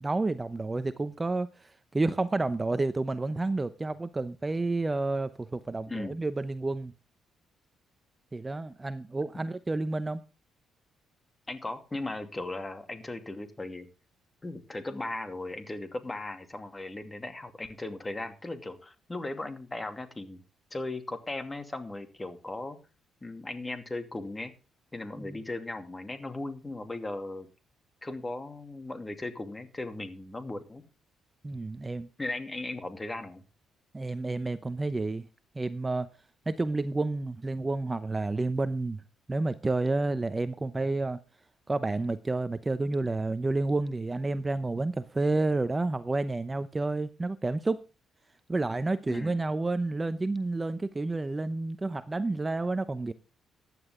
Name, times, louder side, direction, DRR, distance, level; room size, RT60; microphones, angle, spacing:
voice 1, 0.0-6.9 8.3-10.2 25.2-25.4 31.4-32.1 33.9-35.3 35.5-36.1 36.5-39.0 39.3-41.2 41.7-47.8 48.5-53.1, right 2 dB, 20° right, 0.8 m, -30 dB
voice 2, 11.5-13.9 14.4-20.4 20.7-22.8 23.2-24.5 24.9-27.5 28.0-30.8 32.2-33.4 49.1-49.4, left 2 dB, 20° left, 2.5 m, -37 dB
15.0 x 11.0 x 3.7 m
cardioid pair, 90°, 0 cm